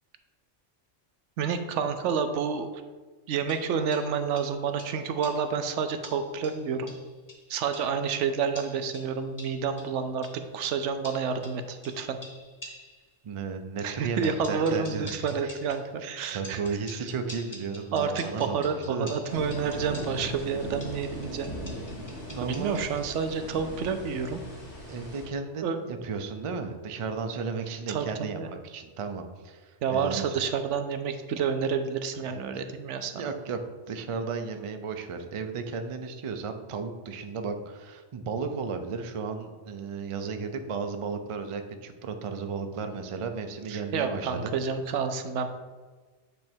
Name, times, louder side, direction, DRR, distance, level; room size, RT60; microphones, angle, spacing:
voice 1, 1.4-2.7 3.3-6.9 7.5-12.2 13.8-16.6 17.9-21.6 22.4-24.4 25.6-25.8 27.9-28.5 29.8-33.1 43.7-45.5, right 6 dB, 80° right, 8 dB, 0.9 m, -29 dB
sound 1, 3.5-5.6 6.0-8.0 8.6-10.5 11.0-13.1 14.2-15.9 16.4-23.1, left 1 dB, 15° left, 0.9 m, -48 dB
voice 2, 13.2-15.5 16.0-19.3 22.3-22.8 24.9-30.4 32.1-32.4 33.1-33.6 33.9-44.5, right 5 dB, 60° right, 6 dB, 0.3 m, -34 dB
sound 2, 19.3-25.2, equal, 70° left, 2.1 m, -39 dB
8.1 x 3.1 x 4.4 m, 1.4 s
omnidirectional pair, 1.2 m